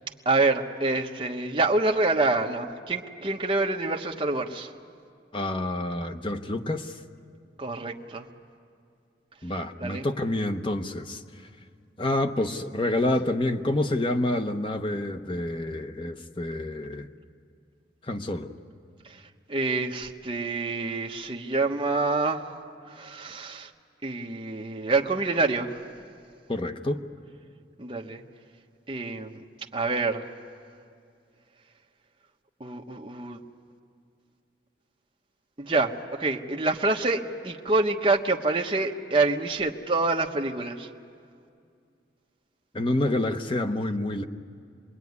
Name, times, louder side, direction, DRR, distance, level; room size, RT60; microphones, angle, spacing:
voice 1, 0.2-4.7 7.6-8.2 9.8-10.1 19.0-19.2 19.5-22.6 22.9-23.7 24.0-25.8 27.8-28.2 28.9-29.4 29.7-30.3 32.6-33.4 35.6-40.9, right 3 dB, 25° right, 1 dB, 1.1 m, -27 dB
voice 2, 5.3-7.0 9.4-11.2 12.0-17.1 18.0-18.5 26.5-27.0 42.7-44.2, left 1 dB, 25° left, 7 dB, 0.9 m, -28 dB
26.5 x 21.0 x 9.6 m, 2.3 s
head